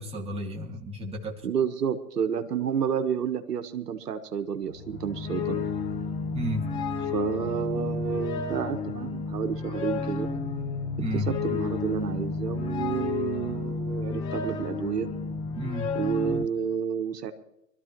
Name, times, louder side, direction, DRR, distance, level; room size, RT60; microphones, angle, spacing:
voice 1, 0.0-1.5 6.3-6.7 11.0-11.3 15.6-15.9, equal, 10° right, 0 dB, 1.9 m, -32 dB
voice 2, 1.4-5.7 7.1-10.3 11.3-15.1 15.9-17.3, right 7 dB, 75° right, 7 dB, 1.5 m, -30 dB
sound 1, 4.7-16.4, left 4 dB, 10° left, 0.5 m, -31 dB
24.5 x 13.0 x 3.0 m, 0.84 s
hypercardioid pair, 120°, 47 cm